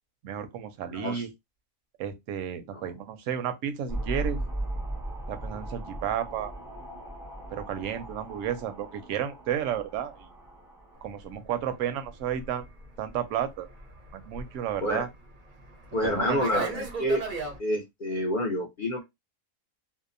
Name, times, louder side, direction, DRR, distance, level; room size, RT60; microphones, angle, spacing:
voice 1, 0.2-1.3 2.0-4.4 5.3-6.5 7.5-10.3 11.0-12.6 13.0-13.7 14.1-15.1 16.0-16.7, right 9 dB, 70° right, 0.9 m, -32 dB
voice 2, 0.9-1.2 2.7-2.8 14.8-15.0 15.9-17.2 17.6-19.0, left 1 dB, 65° left, 0.5 m, -28 dB
sound 1, 3.9-11.0, right 1 dB, 5° right, 0.6 m, -37 dB
Fixed-wing aircraft airplane, 11.1-17.6, right 3 dB, 50° right, 0.6 m, -40 dB
2.7 x 2.0 x 2.5 m
omnidirectional pair, 1.5 m